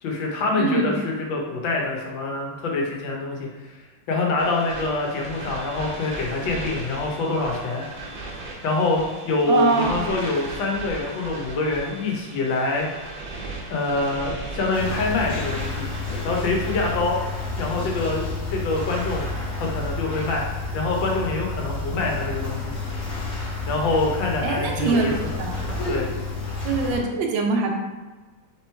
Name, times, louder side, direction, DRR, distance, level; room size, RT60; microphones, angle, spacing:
voice 1, 0.0-3.8 4.1-7.8 8.6-12.9 13.7-15.9 16.2-17.2 17.6-19.3 19.6-20.5 20.7-22.8 23.7-25.4 25.9-26.1, left 3 dB, 85° left, -1 dB, 1.6 m, -25 dB
voice 2, 0.6-0.9 9.5-10.0 24.4-25.5 26.6-27.7, right 4 dB, 85° right, 1 dB, 1.5 m, -23 dB
sound 1, 4.4-17.0, right 2 dB, 40° right, 0.8 m, -37 dB
sound 2, 14.7-27.0, left 3 dB, 50° left, 1.5 m, -30 dB
3.9 x 3.0 x 4.4 m, 1.3 s
omnidirectional pair, 2.0 m